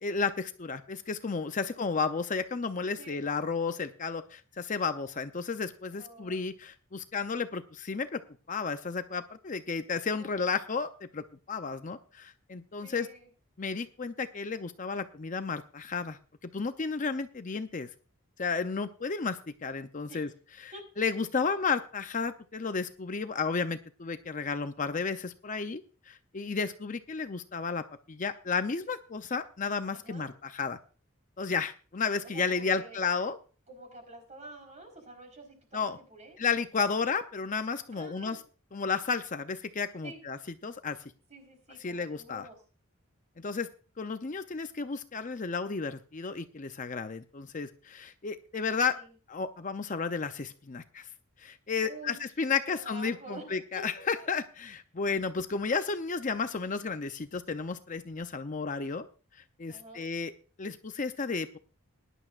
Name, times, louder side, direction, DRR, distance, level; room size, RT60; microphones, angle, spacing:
voice 1, 0.0-8.2 8.5-13.1 13.6-17.9 18.4-20.3 20.6-25.8 26.1-30.8 31.4-33.4 35.7-36.0 36.4-38.4 38.7-41.0 41.8-42.5 43.4-43.7 44.0-48.9 49.3-51.1 51.4-59.1 59.6-60.3 60.6-61.6, left 5 dB, 35° left, 9 dB, 0.6 m, -33 dB
voice 2, 5.9-6.4 10.2-10.5 12.8-13.3 20.1-20.3 20.7-20.8 21.4-21.5 29.9-30.3 32.2-33.1 33.7-36.4 37.9-38.4 40.0-40.2 41.3-42.6 48.9-49.1 51.8-52.2 52.6-53.4 59.7-60.1, right 2 dB, 35° right, 4 dB, 4.1 m, -48 dB
20.0 x 11.0 x 2.5 m, 0.36 s
head